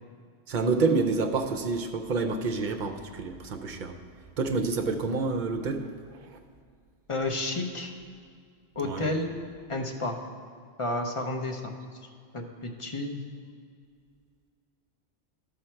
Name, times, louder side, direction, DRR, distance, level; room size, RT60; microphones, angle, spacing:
voice 1, 0.5-4.0 4.4-6.4 8.8-9.1, right 4 dB, 55° right, 5 dB, 0.6 m, -28 dB
voice 2, 7.1-7.9 8.8-9.3 9.7-10.2 10.8-11.7 12.3-13.2, left 2 dB, 35° left, 2 dB, 0.7 m, -31 dB
12.5 x 5.0 x 4.4 m, 2.1 s
omnidirectional pair, 1.1 m